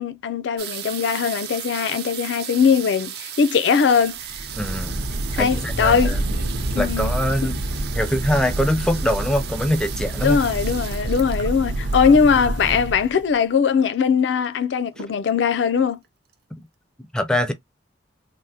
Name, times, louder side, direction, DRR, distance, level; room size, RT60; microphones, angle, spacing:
voice 1, 0.0-4.2 5.3-6.2 6.7-7.1 7.4-7.5 10.2-16.0, left 6 dB, 75° left, 0.4 m, -20 dB
sound 1, 0.6-13.1 13.9-14.0 14.2-14.6 14.9-15.5 16.0-16.1 16.3-16.4, right 10 dB, 60° right, 0.4 m, -36 dB
sound 2, 4.2-13.3, right 1 dB, 90° right, 0.8 m, -27 dB
voice 2, 4.5-5.0 5.4-6.2 6.8-7.6 7.9-10.4 17.1-17.5, equal, 5° left, 0.4 m, -23 dB
3.3 x 2.1 x 2.6 m
head